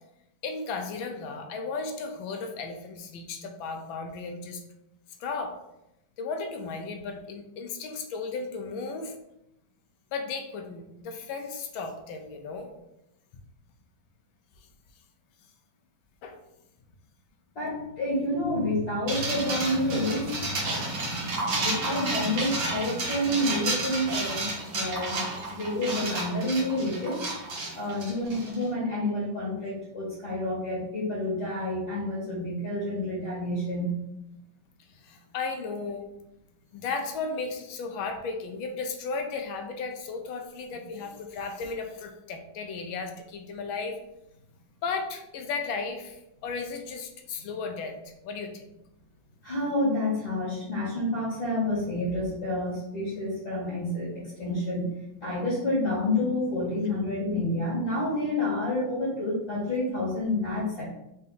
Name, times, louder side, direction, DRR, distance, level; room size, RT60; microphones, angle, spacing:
voice 1, 0.4-4.6 5.2-5.5 6.2-9.1 10.1-12.7 16.2-16.4 34.9-36.0 36.7-44.0 44.8-48.7, left 4 dB, 85° left, 5 dB, 1.4 m, -35 dB
voice 2, 17.6-20.9 21.4-24.4 24.7-25.2 25.5-27.2 27.7-33.9 49.4-54.9 55.2-60.8, left 1 dB, 50° left, -8 dB, 2.2 m, -29 dB
sound 1, 19.1-28.6, right 2 dB, 45° right, 1.5 m, -31 dB
4.1 x 2.8 x 4.0 m, 0.86 s
omnidirectional pair, 2.2 m